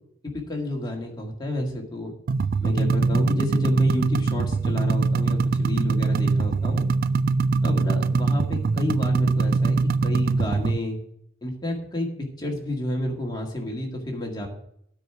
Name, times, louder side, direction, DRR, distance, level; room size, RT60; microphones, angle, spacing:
voice 1, 0.3-2.1 2.6-6.9 7.6-11.0 11.4-12.1 12.4-14.5, left 1 dB, 20° left, 0 dB, 1.9 m, -29 dB
sound 1, 2.3-10.8, right 4 dB, 45° right, 0.3 m, -22 dB
9.4 x 4.8 x 7.9 m, 0.72 s
head